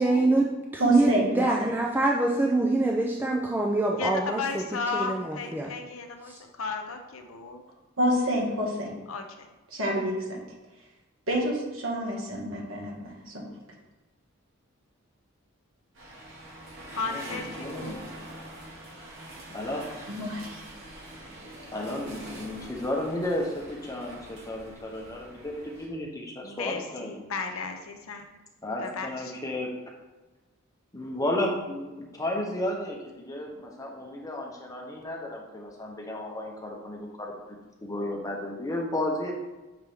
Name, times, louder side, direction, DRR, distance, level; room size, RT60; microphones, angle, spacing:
voice 1, 0.0-4.7 4.9-5.7 6.2-6.4, right 2 dB, 10° right, -1 dB, 0.4 m, -25 dB
voice 2, 0.8-1.5 8.0-8.9 9.7-10.2 11.3-13.4 20.1-20.4, equal, 80° right, -2 dB, 1.8 m, -27 dB
voice 3, 4.0-7.6 9.1-9.2 16.9-18.0 26.4-28.3 28.8-29.1, left 4 dB, 80° left, 5 dB, 0.8 m, -34 dB
sound 1, 15.9-25.9, right 1 dB, 65° right, 1.8 m, -44 dB
voice 4, 17.0-17.9 19.5-19.8 21.7-27.3 28.6-29.7 30.9-39.3, left 1 dB, 15° left, 0 dB, 0.9 m, -33 dB
6.7 x 4.6 x 3.4 m, 1.1 s
head